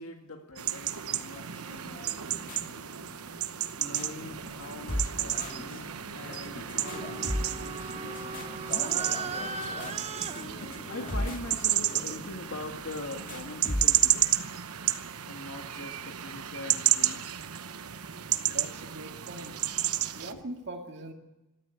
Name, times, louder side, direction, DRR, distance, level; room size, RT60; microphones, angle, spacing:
voice 1, 0.0-2.1 3.8-9.9 10.5-14.2 15.3-17.4 20.3-20.4, left 2 dB, 70° left, 3 dB, 1.9 m, -43 dB
sound 1, 0.6-20.3, right 12 dB, 85° right, 1.0 m, -32 dB
sound 2, 1.2-14.2, left 1 dB, 35° left, 2.6 m, -39 dB
sound 3, 6.8-12.7, right 3 dB, 30° right, 0.9 m, -40 dB
voice 2, 18.4-19.5 20.1-21.1, right 2 dB, 50° right, 2 dB, 2.2 m, -41 dB
23.0 x 13.0 x 9.6 m, 1.0 s
head